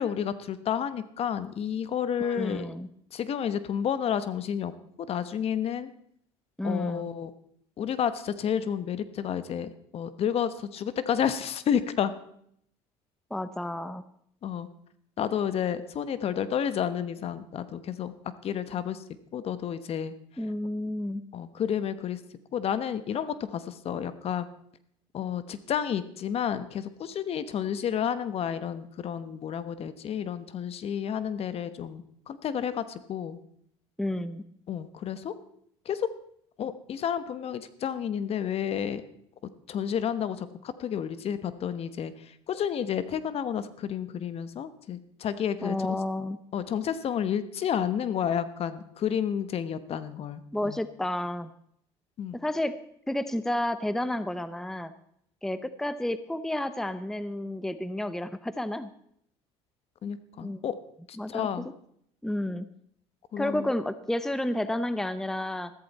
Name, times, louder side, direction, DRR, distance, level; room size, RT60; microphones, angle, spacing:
voice 1, 0.0-2.8 3.1-4.7 5.1-5.9 6.6-7.3 7.8-12.1 14.4-14.7 15.2-18.1 18.4-19.0 19.3-20.1 21.3-22.2 22.5-24.5 25.1-33.4 34.7-35.3 35.8-36.1 36.6-39.0 39.7-46.0 46.5-50.8 52.2-52.4 60.0-60.8 61.3-61.7 63.3-63.7, left 8 dB, 50° left, 13 dB, 1.1 m, -31 dB
voice 2, 2.2-2.9 6.6-7.1 13.3-14.0 20.4-21.2 34.0-34.4 45.6-46.4 50.5-51.5 52.3-52.7 53.1-54.9 55.4-58.9 60.4-60.6 61.2-61.6 62.2-62.7 63.4-65.7, left 1 dB, 5° left, 13 dB, 0.7 m, -31 dB
14.5 x 13.5 x 4.2 m, 0.69 s
supercardioid pair, 90°, 13 cm